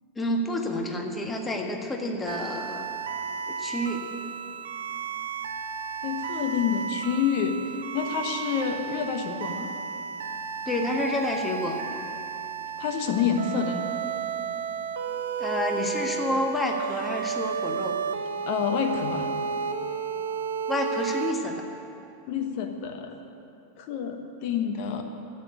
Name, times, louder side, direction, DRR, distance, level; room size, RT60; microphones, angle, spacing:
voice 1, 0.1-2.9 3.5-4.0 10.7-11.8 15.4-18.0 20.7-21.6, left 1 dB, 15° left, 2 dB, 1.6 m, -29 dB
sound 1, 2.3-21.3, right 6 dB, 65° right, 0.7 m, -32 dB
voice 2, 6.0-7.6 7.9-9.7 12.8-13.9 18.5-19.3 22.3-23.1 23.8-25.0, left 7 dB, 45° left, 5 dB, 1.2 m, -28 dB
12.0 x 8.9 x 9.9 m, 2.8 s
figure-of-eight pair, 90°, 0 cm